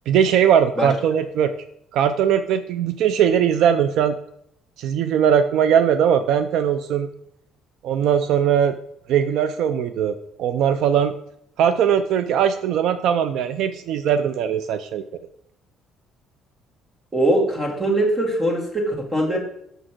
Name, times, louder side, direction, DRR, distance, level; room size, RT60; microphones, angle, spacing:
voice 1, 0.1-1.5 1.9-4.2 4.8-7.1 7.8-8.8 9.1-11.1 11.6-15.0, right 8 dB, 70° right, 11 dB, 0.4 m, -20 dB
voice 2, 17.1-19.4, right 1 dB, 15° right, 0 dB, 1.9 m, -21 dB
6.6 x 6.4 x 4.5 m, 0.73 s
cardioid pair, 145°, 0 cm